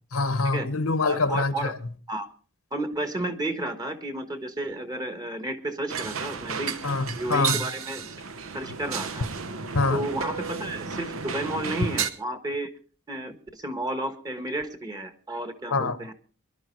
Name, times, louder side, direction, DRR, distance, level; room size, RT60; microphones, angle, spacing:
voice 1, 0.1-1.7 6.8-7.6 9.7-10.0 15.7-16.0, left 3 dB, 90° left, 1.4 m, -25 dB
voice 2, 1.0-1.7 2.1-2.3 2.7-6.8 7.2-8.1 8.5-9.3 9.9-12.7 13.1-16.1, right 1 dB, 20° right, 1.3 m, -32 dB
sound 1, 5.9-12.1, right 6 dB, 70° right, 1.0 m, -33 dB
24.5 x 11.5 x 3.2 m
head